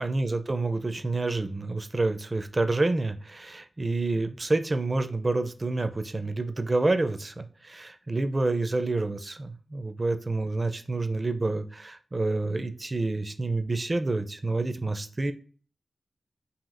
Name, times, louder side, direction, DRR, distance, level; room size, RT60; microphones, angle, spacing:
voice 1, 0.0-15.3, right 2 dB, 30° right, 8 dB, 0.4 m, -28 dB
5.6 x 2.8 x 2.5 m, 0.40 s
wide cardioid pair, 95°, 0 cm